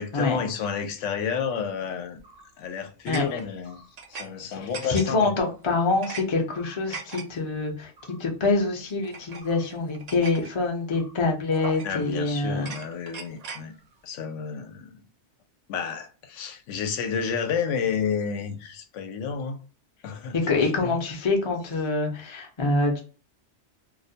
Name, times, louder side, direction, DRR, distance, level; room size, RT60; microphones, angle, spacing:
voice 1, 0.0-2.2 2.6-3.8 4.1-5.3 11.8-13.7 14.0-15.0 15.7-19.6 20.0-21.0, left 6 dB, 85° left, 0.9 m, -31 dB
sound 1, 2.2-2.5 3.1-4.3 4.5-5.3 5.7-6.2 6.6-7.2 8.0-8.2 9.0-10.5 10.9-11.1 11.5-12.1 12.5-13.7, right 4 dB, 65° right, 0.4 m, -40 dB
voice 2, 4.9-7.9 8.2-12.7 20.3-23.0, left 3 dB, 35° left, 0.4 m, -25 dB
2.3 x 2.1 x 2.7 m
omnidirectional pair, 1.2 m